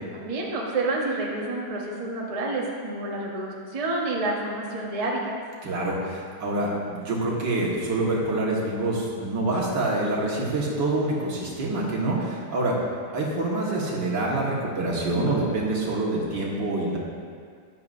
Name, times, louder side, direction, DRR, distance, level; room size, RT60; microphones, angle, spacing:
voice 1, 0.1-5.3, right 2 dB, 25° right, -2 dB, 1.0 m, -29 dB
voice 2, 5.6-12.7 13.1-17.0, right 2 dB, 70° right, -4 dB, 2.3 m, -26 dB
12.5 x 10.5 x 2.6 m, 2.1 s
omnidirectional pair, 2.0 m